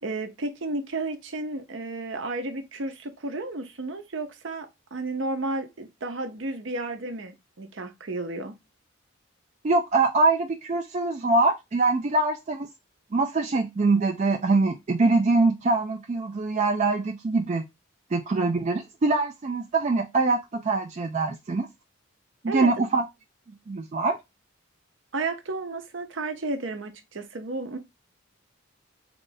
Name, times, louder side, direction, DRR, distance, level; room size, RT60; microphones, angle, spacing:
voice 1, 0.0-8.5 22.5-22.7 25.1-27.8, right 2 dB, 60° right, 0.7 m, -32 dB
voice 2, 9.6-12.7 13.1-17.6 18.1-21.7 22.4-23.0 23.7-24.2, right 3 dB, 35° right, 0.4 m, -23 dB
3.7 x 2.4 x 3.9 m
head